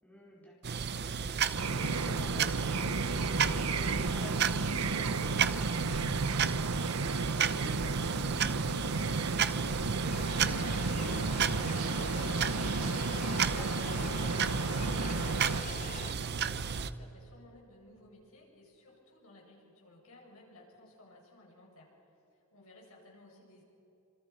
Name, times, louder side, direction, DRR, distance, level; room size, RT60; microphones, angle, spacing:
voice 1, 0.0-5.8 7.0-12.5 12.9-14.1, left 1 dB, 10° left, -4 dB, 4.7 m, -49 dB
sound 1, 0.6-16.9, right 7 dB, 50° right, 0.8 m, -33 dB
sound 2, 1.5-15.6, right 3 dB, 75° right, 0.9 m, -33 dB
sound 3, 10.1-16.1, left 4 dB, 35° left, 0.5 m, -43 dB
voice 2, 14.6-23.6, left 1 dB, 70° left, -2 dB, 7.4 m, -56 dB
27.5 x 27.5 x 5.6 m, 3.0 s
head